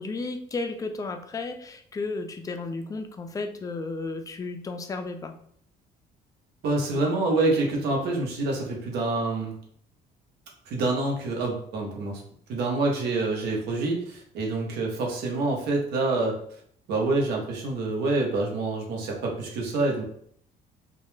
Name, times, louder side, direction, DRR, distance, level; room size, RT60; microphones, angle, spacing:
voice 1, 0.0-5.3, left 3 dB, 20° left, 6 dB, 0.3 m, -33 dB
voice 2, 6.6-9.5 10.7-12.2 12.5-16.4 16.9-20.0, right 2 dB, 75° right, 0 dB, 0.8 m, -26 dB
2.2 x 2.0 x 3.0 m, 0.62 s
cardioid pair, 110°, 17 cm